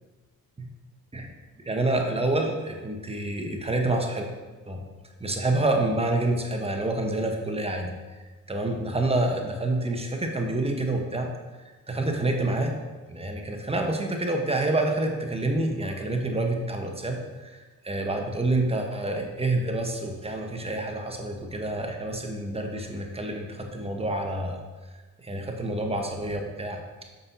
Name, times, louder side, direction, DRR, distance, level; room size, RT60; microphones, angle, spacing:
voice 1, 1.6-4.2 4.6-4.8 5.2-7.9 8.5-11.3 11.9-12.7 13.1-24.6 25.2-26.8, right 2 dB, 15° right, 2 dB, 1.1 m, -28 dB
6.9 x 5.3 x 2.8 m, 1.3 s
supercardioid pair, 55°, 39 cm